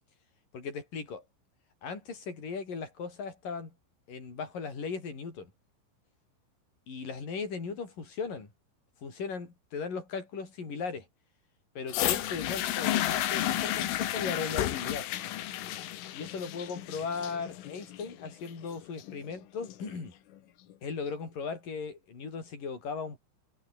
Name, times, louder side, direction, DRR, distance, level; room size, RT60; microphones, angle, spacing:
voice 1, 0.5-1.2 1.8-3.7 4.1-5.5 6.9-8.5 9.0-11.1 11.8-15.1 16.1-20.1 20.8-23.2, left 5 dB, 45° left, 7.9 m, -37 dB
sound 1, 11.9-19.9 20.7-20.8, left 13 dB, 80° left, 4.3 m, -32 dB
omnidirectional pair, 5.7 m